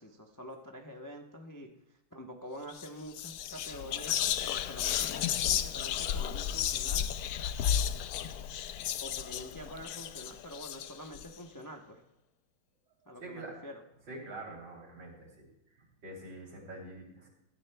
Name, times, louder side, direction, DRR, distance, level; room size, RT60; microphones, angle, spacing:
voice 1, 0.0-7.1 9.0-12.0 13.1-13.8, equal, 25° left, 2 dB, 0.4 m, -46 dB
Whispering, 2.7-2.9 3.2-11.2, left 10 dB, 75° left, 0.8 m, -33 dB
voice 2, 13.0-13.6 14.1-15.5 15.8-17.3, right 2 dB, 65° right, -1 dB, 3.8 m, -45 dB
17.5 x 13.0 x 2.2 m, 0.90 s
omnidirectional pair, 2.1 m